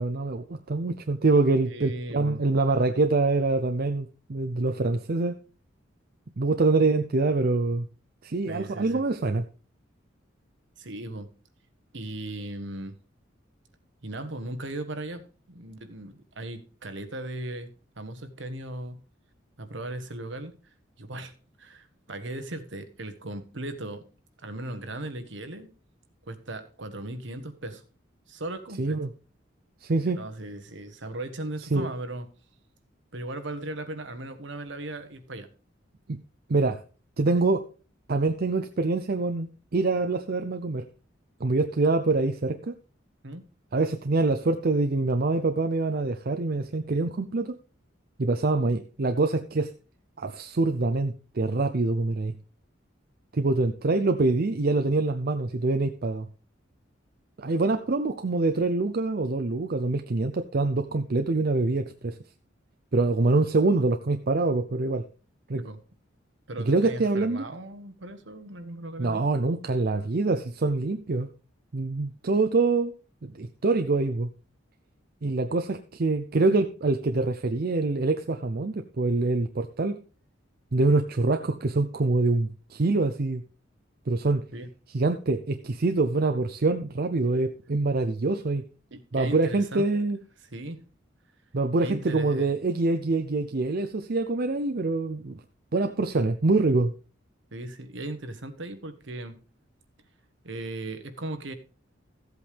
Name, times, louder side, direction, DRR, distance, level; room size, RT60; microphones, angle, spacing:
voice 1, 0.0-5.4 6.4-7.9 8.2-9.5 28.8-29.1 29.8-30.2 31.7-31.9 36.1-36.2 36.5-36.8 37.2-37.6 38.1-40.9 41.4-42.7 43.7-47.6 48.2-49.7 50.2-52.3 53.3-56.3 57.4-62.2 62.9-65.0 65.5-65.6 66.7-67.5 69.0-71.3 71.7-72.9 73.2-74.3 75.2-80.0 80.7-83.4 84.1-84.4 84.9-88.6 89.1-90.2 91.5-95.4 95.7-96.9, right 3 dB, 50° right, 0.6 m, -25 dB
voice 2, 1.7-2.4 8.5-9.0 10.8-11.3 11.9-12.9 14.0-19.0 19.6-20.5 21.0-21.3 21.6-24.1 24.4-25.7 26.2-27.8 28.3-29.0 30.0-32.3 33.1-35.5 43.2-43.4 65.6-65.8 66.5-69.3 84.5-84.7 88.9-89.9 90.5-90.8 91.8-92.5 97.5-99.4 100.4-101.5, right 1 dB, 65° right, 1.3 m, -37 dB
14.5 x 8.1 x 3.4 m
head